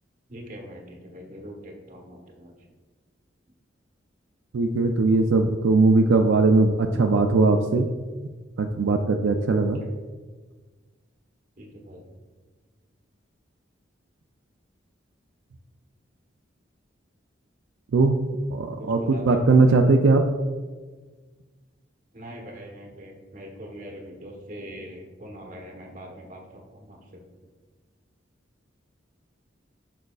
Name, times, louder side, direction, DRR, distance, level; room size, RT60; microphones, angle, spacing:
voice 1, 0.3-2.5 9.6-9.7 11.6-12.0 18.8-19.4 19.7-19.8 22.1-26.4 26.7-27.0, equal, 40° right, 0 dB, 1.0 m, -41 dB
voice 2, 4.5-7.9 8.6-9.8 17.9-18.2 18.5-20.2, right 3 dB, 80° right, 3 dB, 0.4 m, -19 dB
6.4 x 6.3 x 2.3 m, 1.4 s
head